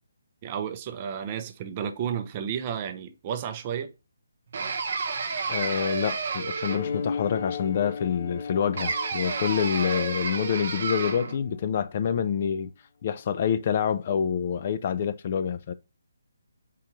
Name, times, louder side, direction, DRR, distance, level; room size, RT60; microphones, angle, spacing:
voice 1, 0.4-3.9, right 8 dB, 30° right, 0.5 m, -32 dB
sound 1, 4.5-7.1 8.8-11.4, right 4 dB, 55° right, 0.8 m, -31 dB
voice 2, 5.5-12.7 13.0-15.7, left 8 dB, 40° left, 0.4 m, -27 dB
sound 2, 6.7-11.6, left 5 dB, 70° left, 0.8 m, -36 dB
4.3 x 3.8 x 3.0 m
figure-of-eight pair, 155°, 0 cm